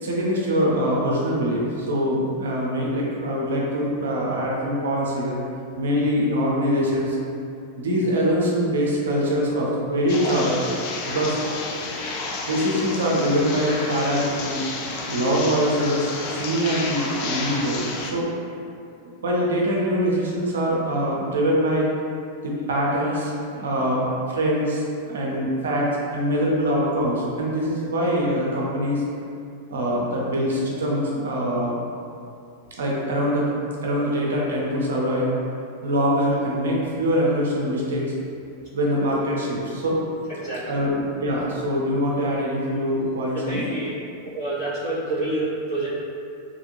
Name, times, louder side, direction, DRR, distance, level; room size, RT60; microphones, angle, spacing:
voice 1, 0.0-5.4 5.8-7.2 7.8-10.7 11.0-11.4 12.5-14.6 15.1-17.9 18.1-18.3 19.2-21.9 22.4-29.0 29.7-31.7 32.8-33.5 33.8-35.3 35.8-38.0 38.7-40.0 40.7-43.7, equal, 65° right, -4 dB, 0.6 m, -23 dB
sound 1, 10.1-18.1, left 3 dB, 45° left, 0.4 m, -31 dB
voice 2, 40.4-40.9 43.3-43.9 44.2-46.0, right 2 dB, 60° left, -16 dB, 1.0 m, -28 dB
2.8 x 2.5 x 2.7 m, 2.5 s
figure-of-eight pair, 90°, 0 cm